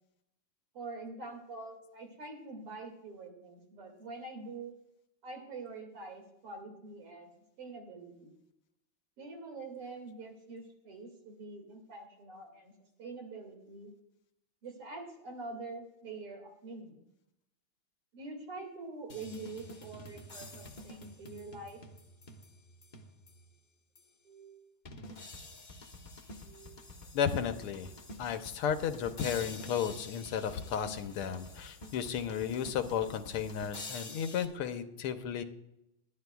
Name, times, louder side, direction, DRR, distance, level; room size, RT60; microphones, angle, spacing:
voice 1, 0.7-4.7 5.2-7.3 7.6-8.3 9.2-12.7 13.0-13.9 14.6-17.0 18.1-21.8 24.2-24.6 26.4-26.7, right 3 dB, 85° right, 2 dB, 3.3 m, -45 dB
sound 1, 19.1-23.5 24.0-24.1 24.9-34.5, left 2 dB, 40° left, 0.6 m, -48 dB
voice 2, 27.1-27.9 28.2-35.4, left 8 dB, 85° left, 8 dB, 1.8 m, -33 dB
20.0 x 11.5 x 2.4 m, 0.83 s
omnidirectional pair, 2.4 m